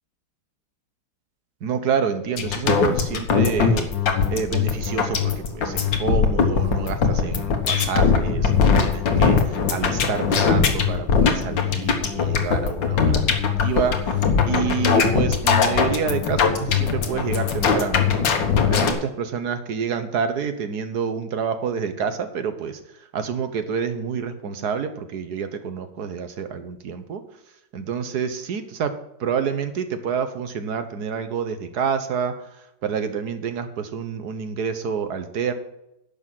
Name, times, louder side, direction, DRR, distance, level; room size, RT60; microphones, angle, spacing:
voice 1, 1.6-3.9 4.3-13.3 13.6-14.2 14.5-18.3 18.7-22.8 23.1-27.2 27.7-28.9 29.2-32.3 32.8-35.5, right 6 dB, 60° right, 9 dB, 1.4 m, -28 dB
sound 1, 2.4-18.9, left 6 dB, 65° left, 2.0 m, -21 dB
11.0 x 6.3 x 7.5 m, 0.84 s
omnidirectional pair, 2.2 m